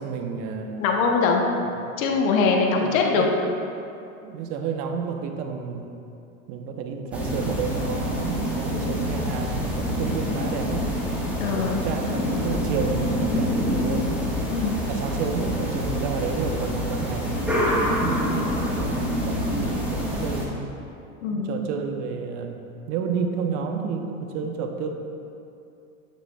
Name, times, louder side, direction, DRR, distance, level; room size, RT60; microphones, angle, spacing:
voice 1, 0.0-1.0 1.8-1.9 2.8-3.4 4.2-5.9 6.5-10.9 11.4-14.1 14.9-18.5 18.8-20.6 21.3-22.6 22.9-24.9, right 6 dB, 55° right, 4 dB, 0.8 m, -31 dB
voice 2, 0.8-1.4 2.0-3.2 11.4-11.8 14.5-14.8 21.2-21.6, left 4 dB, 75° left, 1 dB, 0.9 m, -22 dB
sound 1, 7.1-20.4, equal, 5° right, 1.3 m, -26 dB
7.4 x 6.8 x 2.2 m, 2.6 s
hypercardioid pair, 105°, 41 cm